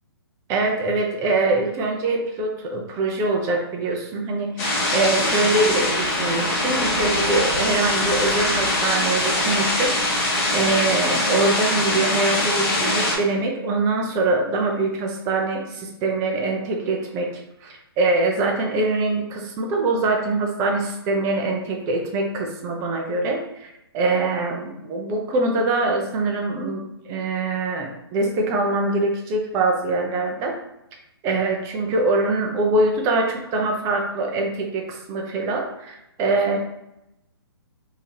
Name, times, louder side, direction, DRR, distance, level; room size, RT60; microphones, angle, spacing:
voice 1, 0.5-17.3 17.6-30.5 31.2-36.6, right 2 dB, 20° right, 1 dB, 0.5 m, -23 dB
sound 1, 4.6-13.2, left 1 dB, 35° left, 1.1 m, -22 dB
3.4 x 2.8 x 2.8 m, 0.86 s
hypercardioid pair, 135°, 13 cm